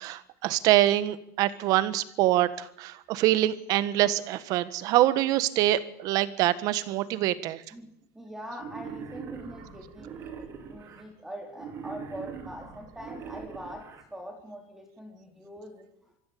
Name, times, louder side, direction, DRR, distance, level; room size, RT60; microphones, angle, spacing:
voice 1, 0.0-7.6, right 14 dB, 50° right, 15 dB, 1.5 m, -25 dB
voice 2, 7.7-10.2 10.7-16.1, equal, 5° right, 3 dB, 3.5 m, -43 dB
Wild animals, 8.5-11.0 11.5-14.0, right 6 dB, 35° right, 3.8 m, -42 dB
24.5 x 15.0 x 8.6 m, 0.76 s
cardioid pair, 150°, 8 cm